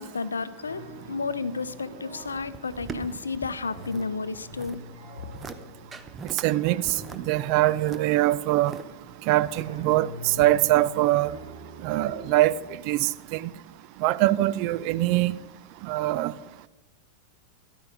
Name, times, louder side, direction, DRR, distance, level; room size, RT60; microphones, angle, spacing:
voice 1, 0.0-4.8, left 4 dB, 75° left, 0.6 m, -32 dB
sound 1, 0.6-12.6, equal, 60° right, 5.1 m, -45 dB
sound 2, 2.2-4.1 4.3-4.8 5.2-5.6 5.9-6.5 6.8-8.8 9.4-10.0 10.4-10.5, right 5 dB, 20° right, 0.9 m, -41 dB
voice 2, 6.4-6.8 7.2-8.8 9.3-11.4 11.8-12.5 12.9-13.4 14.0-15.4 15.9-16.3, right 16 dB, 45° right, 0.4 m, -23 dB
14.0 x 12.0 x 5.1 m
figure-of-eight pair, 90°, 0 cm